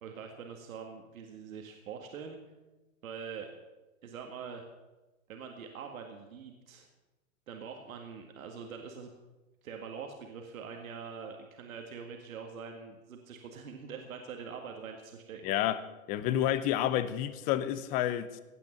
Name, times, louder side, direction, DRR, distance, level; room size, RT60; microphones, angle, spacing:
voice 1, 0.0-2.4 3.0-3.5 4.0-4.6 5.3-6.9 7.5-9.1 9.6-15.5, right 6 dB, 75° right, 1.9 m, -44 dB
voice 2, 15.4-15.8 16.1-18.4, left 12 dB, 20° left, 0.5 m, -29 dB
16.5 x 6.1 x 8.5 m
hypercardioid pair, 140°, 42 cm